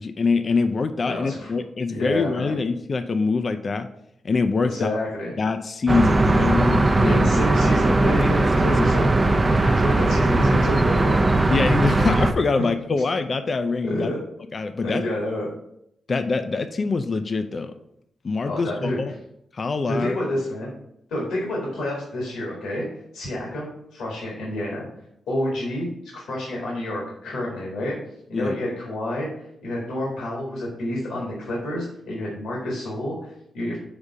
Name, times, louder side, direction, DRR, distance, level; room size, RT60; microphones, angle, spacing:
voice 1, 0.0-3.9 4.2-5.0 5.4-7.3 8.2-8.3 8.6-8.9 11.5-14.1 14.5-15.0 16.1-17.7 18.2-19.1 19.5-20.2 28.3-28.6, left 4 dB, 50° left, 9 dB, 0.5 m, -24 dB
voice 2, 1.1-1.5 1.9-2.6 4.6-5.3 7.0-11.2 13.8-14.2 14.8-15.5 18.4-19.0 19.9-20.7 21.1-22.8 23.1-24.9 25.3-25.9 26.1-28.0 28.3-29.3 29.6-33.8, left 1 dB, 80° left, -3 dB, 1.7 m, -28 dB
sound 1, 5.9-12.3, right 2 dB, 35° right, 0.6 m, -19 dB
5.2 x 3.5 x 5.4 m, 0.75 s
supercardioid pair, 45°, 0 cm